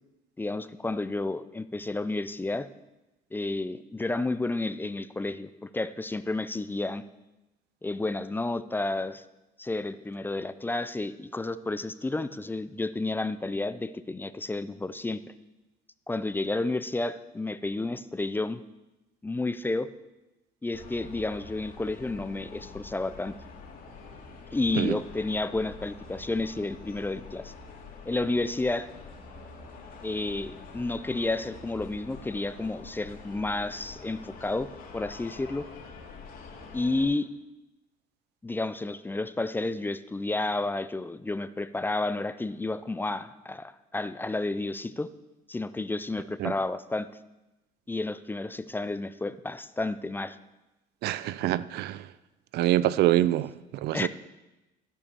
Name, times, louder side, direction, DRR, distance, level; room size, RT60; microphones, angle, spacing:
voice 1, 0.4-2.7 3.3-7.0 7.8-9.2 9.6-15.2 16.1-18.6 19.2-19.9 20.6-23.3 24.5-27.5 28.1-28.9 30.0-34.7 34.9-35.6 36.7-37.3 38.4-45.1 45.5-47.1 47.9-50.4 53.9-54.1, left 2 dB, 10° left, 0.4 m, -31 dB
sound 1, 20.7-37.0, left 4 dB, 60° left, 2.4 m, -46 dB
voice 2, 51.0-52.0 52.5-54.1, right 14 dB, 75° right, 0.4 m, -25 dB
14.0 x 5.5 x 6.8 m
cardioid pair, 110°, 17 cm